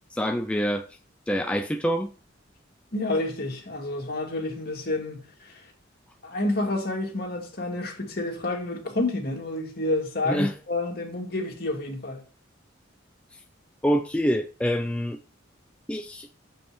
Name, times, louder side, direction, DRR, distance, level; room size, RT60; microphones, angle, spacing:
voice 1, 0.1-0.9 1.3-2.1 10.3-10.5 13.8-15.2 15.9-16.3, equal, 5° left, 0.4 m, -26 dB
voice 2, 2.9-5.6 6.2-12.2, left 2 dB, 50° left, 2.2 m, -29 dB
7.3 x 5.3 x 4.9 m
head